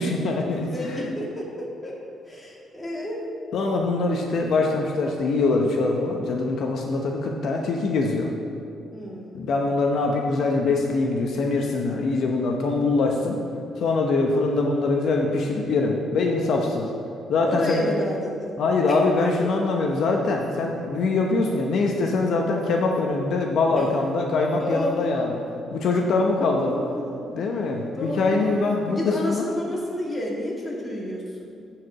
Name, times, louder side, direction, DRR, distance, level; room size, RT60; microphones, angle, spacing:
voice 1, 0.0-1.0 3.5-8.3 9.3-13.4 13.8-16.9 17.3-17.8 18.6-25.4 25.7-26.8 27.3-29.5, left 3 dB, 70° left, 1 dB, 0.9 m, -23 dB
voice 2, 0.7-2.0 2.3-3.2 8.9-9.5 17.4-18.5 18.9-19.0 23.7-23.8 24.6-25.1 26.6-27.3 28.0-31.6, left 1 dB, 15° left, -4 dB, 2.5 m, -30 dB
9.1 x 4.9 x 7.6 m, 2.5 s
cardioid pair, 90°, 0 cm